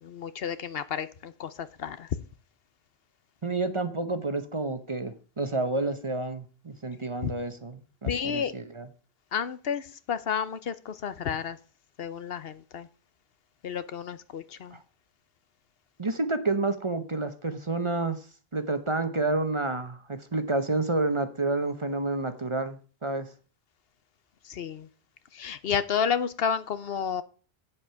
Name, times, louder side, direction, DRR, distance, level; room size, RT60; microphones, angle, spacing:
voice 1, 0.0-2.2 7.2-7.3 8.1-8.6 9.3-11.6 12.0-12.9 13.6-14.8 24.4-24.9 25.3-27.2, left 7 dB, 70° left, 14 dB, 1.0 m, -31 dB
voice 2, 3.4-8.9 14.7-14.8 16.0-23.3, right 2 dB, 30° right, 10 dB, 0.9 m, -29 dB
8.6 x 7.6 x 5.6 m, 0.38 s
omnidirectional pair, 1.1 m